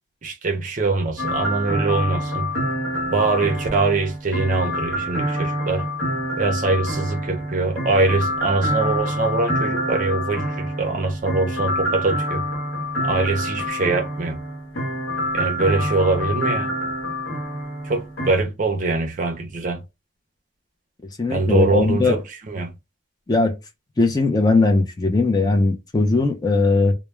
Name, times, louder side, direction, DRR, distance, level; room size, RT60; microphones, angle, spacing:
voice 1, 0.2-2.5 3.1-5.8 6.4-12.4 13.0-14.4 15.3-16.7 17.9-19.8 21.3-22.2 22.5-22.7, right 3 dB, 40° right, 0.5 m, -23 dB
sound 1, 1.2-18.3, equal, 80° left, 0.9 m, -26 dB
voice 2, 21.2-22.2 23.3-23.5 24.0-26.9, left 3 dB, 20° left, 0.4 m, -19 dB
2.2 x 2.0 x 3.0 m
head